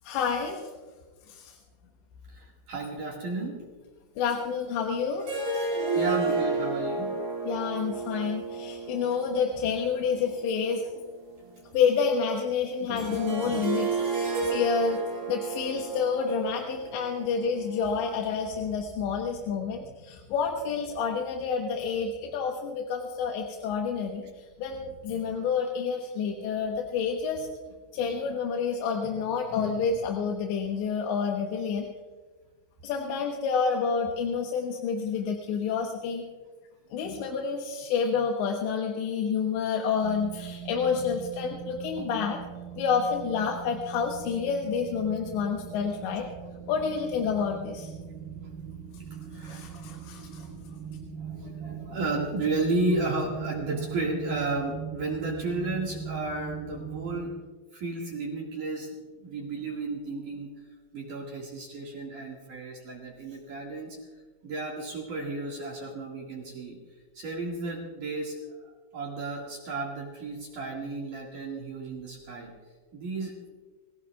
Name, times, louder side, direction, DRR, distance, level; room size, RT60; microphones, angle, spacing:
voice 1, 0.0-0.6 1.3-1.5 4.2-5.3 7.4-10.8 11.7-24.3 24.6-27.5 27.9-31.9 32.8-36.2 36.9-42.4 42.8-46.3 46.7-47.9 49.4-50.4, left 6 dB, 75° left, 1 dB, 3.2 m, -29 dB
voice 2, 2.3-3.7 5.7-7.1 11.4-11.6 27.9-28.0 33.0-33.2 41.1-41.2 49.3-49.7 51.2-57.3 57.7-60.5 60.9-64.0 64.4-66.8 67.1-72.5 72.9-73.4, right 2 dB, 55° right, -2 dB, 2.7 m, -33 dB
sound 1, 5.2-11.1 13.0-18.2, right 3 dB, 35° right, 2.9 m, -32 dB
sound 2, 40.0-57.3, right 7 dB, 80° right, 4.2 m, -40 dB
26.5 x 16.5 x 2.4 m, 1.4 s
omnidirectional pair, 5.7 m